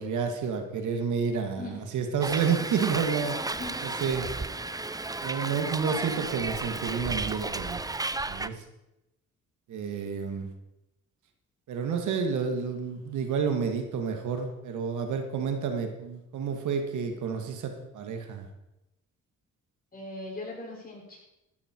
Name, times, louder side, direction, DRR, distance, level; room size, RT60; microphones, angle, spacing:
voice 1, 0.0-3.5 3.8-4.3 5.2-7.9 8.3-8.6 9.7-10.5 11.7-18.5, right 6 dB, 80° right, 5 dB, 2.3 m, -30 dB
Hiss, 2.2-8.5, right 3 dB, 10° right, 0.6 m, -33 dB
voice 2, 3.5-3.9 9.9-10.1 19.9-21.2, left 2 dB, 30° left, -2 dB, 6.4 m, -40 dB
13.5 x 13.0 x 4.7 m, 0.91 s
cardioid pair, 90°, 30 cm